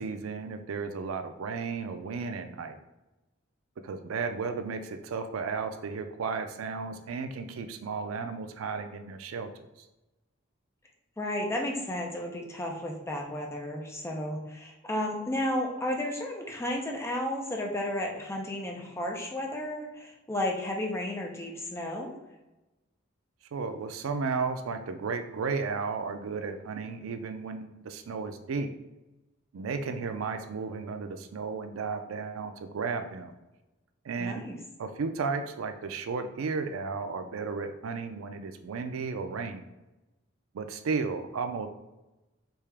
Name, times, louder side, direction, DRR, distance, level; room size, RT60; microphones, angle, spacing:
voice 1, 0.0-2.8 3.8-9.5 23.5-28.7 29.5-33.3 34.0-34.4 34.8-39.7 40.5-41.7, right 4 dB, 85° right, 8 dB, 0.4 m, -34 dB
voice 2, 11.2-22.1 34.2-34.6, left 1 dB, 15° left, 0 dB, 0.6 m, -33 dB
3.5 x 2.8 x 3.3 m, 1.0 s
head